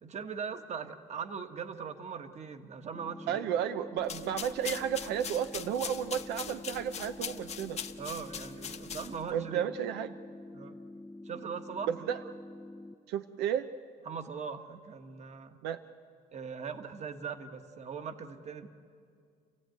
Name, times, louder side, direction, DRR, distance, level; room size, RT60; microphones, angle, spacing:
voice 1, 0.0-3.4 8.0-9.6 10.5-10.8 11.2-11.9 14.0-15.6 16.3-18.7, right 6 dB, 40° right, 8 dB, 1.5 m, -40 dB
sound 1, 2.9-12.9, left 2 dB, 5° left, 0.6 m, -47 dB
voice 2, 3.3-7.8 9.3-10.1 11.9-12.2 13.1-13.7 15.6-15.8, right 9 dB, 85° right, 9 dB, 0.7 m, -32 dB
sound 2, 4.0-9.4, left 7 dB, 40° left, 1.0 m, -41 dB
28.5 x 15.5 x 9.3 m, 2.3 s
cardioid pair, 110°, 17 cm